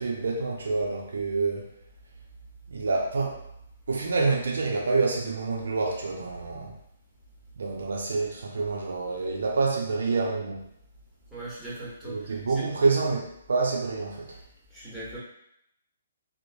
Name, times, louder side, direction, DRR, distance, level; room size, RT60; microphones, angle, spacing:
voice 1, 0.0-1.7 2.7-3.4 3.9-6.8 7.6-10.7 12.0-14.4, right 3 dB, 70° right, -1 dB, 0.4 m, -27 dB
voice 2, 11.3-12.7 14.3-14.4 14.7-15.2, right 2 dB, ahead, -9 dB, 1.2 m, -39 dB
3.0 x 2.0 x 2.6 m, 0.77 s
figure-of-eight pair, 130°, 0 cm